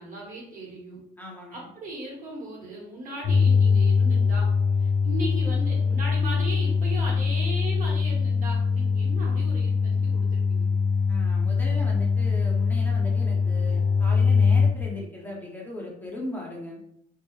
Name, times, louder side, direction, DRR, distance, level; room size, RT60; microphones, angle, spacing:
voice 1, 0.0-1.0 1.5-4.5 4.8-10.7, right 2 dB, 50° right, -3 dB, 1.1 m, -37 dB
voice 2, 1.2-1.7 11.1-16.8, left 1 dB, 10° left, -4 dB, 0.6 m, -38 dB
sound 1, 3.2-14.7, left 5 dB, 65° left, 0.5 m, -22 dB
2.3 x 2.0 x 2.9 m, 0.75 s
cardioid pair, 110°, 17 cm